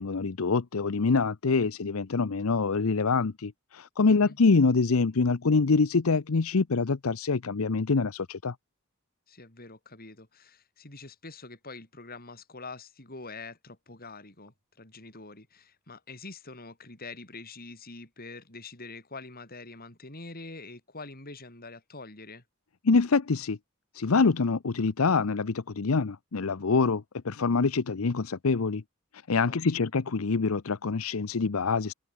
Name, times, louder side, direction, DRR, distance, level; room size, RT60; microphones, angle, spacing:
voice 1, 0.0-8.5 22.8-23.6 23.9-28.8 29.3-31.9, left 4 dB, 75° left, 0.7 m, -25 dB
voice 2, 9.3-22.4 29.4-29.9, left 3 dB, 45° left, 6.3 m, -45 dB
head